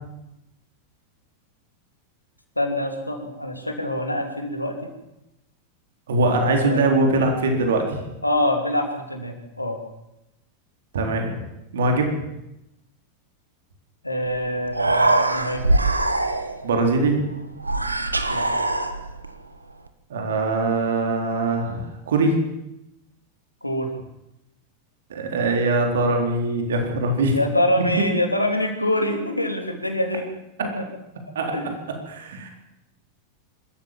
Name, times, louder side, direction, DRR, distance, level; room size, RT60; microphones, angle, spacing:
voice 1, 2.6-4.9 6.4-7.1 8.2-9.8 14.0-15.7 18.3-18.5 23.6-23.9 27.3-30.2 30.7-30.8 31.5-31.7, left 1 dB, 85° left, 4 dB, 3.3 m, -25 dB
voice 2, 6.1-8.0 10.9-11.5 11.7-12.1 16.6-17.2 20.1-22.4 25.1-27.4 31.3-31.5 32.1-32.5, right 2 dB, 60° right, 3 dB, 4.1 m, -22 dB
Human voice, 14.2-14.4 14.6-16.7 17.6-19.3, right 2 dB, 80° right, 1.5 m, -22 dB
25.5 x 14.0 x 7.5 m, 0.89 s
figure-of-eight pair, 90°, 0 cm